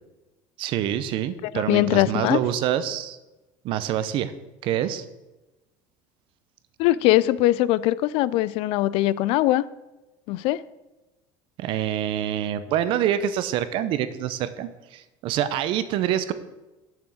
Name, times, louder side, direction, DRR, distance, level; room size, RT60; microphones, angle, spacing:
voice 1, 0.6-3.2 3.6-4.3 4.6-5.0 11.6-16.3, right 10 dB, 55° right, 0.7 m, -26 dB
voice 2, 1.4-2.4 6.8-9.6 10.3-10.6, left 15 dB, 65° left, 0.4 m, -21 dB
7.3 x 6.1 x 7.7 m
cardioid pair, 150°, 10 cm